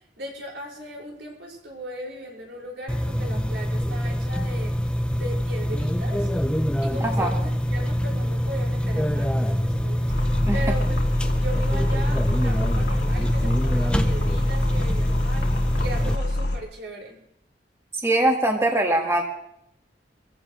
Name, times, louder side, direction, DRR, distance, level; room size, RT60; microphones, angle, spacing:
voice 1, 0.2-4.7 5.1-6.3 6.8-10.1 10.5-15.5 15.8-17.2, right 1 dB, 90° right, -2 dB, 5.9 m, -37 dB
sound 1, 2.9-16.2, equal, 5° left, 0.7 m, -25 dB
sound 2, 10.1-16.6, left 1 dB, 75° left, 2.6 m, -25 dB
voice 2, 17.9-19.2, right 1 dB, 15° right, 2 dB, 1.8 m, -22 dB
23.0 x 15.5 x 3.2 m, 0.73 s
head